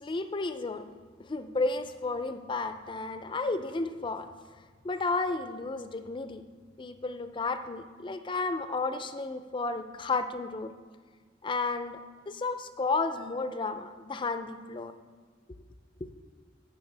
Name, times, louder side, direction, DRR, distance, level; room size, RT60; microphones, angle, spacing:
voice 1, 0.0-0.9 1.2-4.3 4.8-6.5 6.8-10.7 11.4-12.0 12.3-14.9 16.0-16.1, left 3 dB, 25° left, 10 dB, 0.4 m, -32 dB
14.5 x 6.7 x 3.4 m, 1.5 s
head